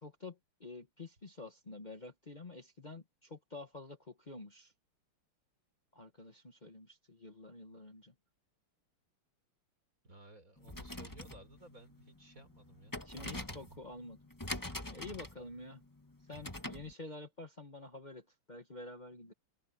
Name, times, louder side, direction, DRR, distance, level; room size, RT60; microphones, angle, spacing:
voice 1, 0.0-4.7 5.9-8.1 13.0-14.2 14.9-15.8 16.3-19.3, left 2 dB, 30° left, 0.9 m, -49 dB
voice 2, 10.0-13.8, right 1 dB, 40° right, 4.4 m, -57 dB
sound 1, 10.6-16.9, left 1 dB, 10° left, 1.3 m, -45 dB
omnidirectional pair, 2.4 m